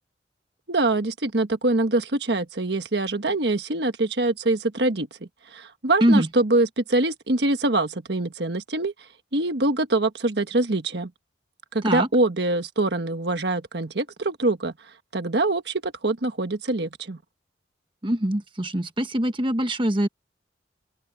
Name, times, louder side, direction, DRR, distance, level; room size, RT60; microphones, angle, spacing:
voice 1, 0.7-5.1 5.5-8.9 9.3-11.1 11.7-14.7 15.1-17.2, right 2 dB, 60° right, 1.5 m, -24 dB
voice 2, 18.0-20.1, right 1 dB, 25° right, 1.4 m, -22 dB
open air
head